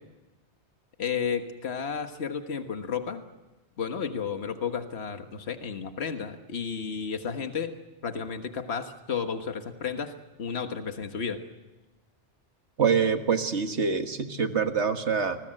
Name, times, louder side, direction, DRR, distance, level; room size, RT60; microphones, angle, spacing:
voice 1, 1.0-3.2 3.8-7.8 8.0-11.4, left 6 dB, 65° left, 7 dB, 1.7 m, -32 dB
voice 2, 12.8-15.4, right 6 dB, 75° right, 7 dB, 1.8 m, -25 dB
29.0 x 21.0 x 7.8 m, 1.1 s
omnidirectional pair, 1.2 m